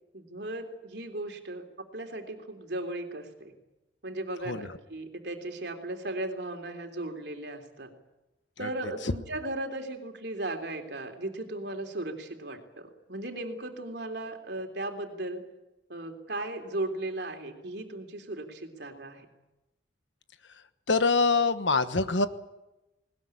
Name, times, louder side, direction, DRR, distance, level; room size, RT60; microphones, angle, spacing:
voice 1, 0.1-1.6 1.9-3.5 4.0-7.9 8.6-15.4 15.9-19.3, right 1 dB, 60° right, 5 dB, 3.4 m, -36 dB
voice 2, 4.4-4.8 8.6-8.7 9.0-9.1 20.9-22.3, left 4 dB, 75° left, 11 dB, 1.3 m, -25 dB
20.5 x 20.0 x 9.8 m, 0.98 s
head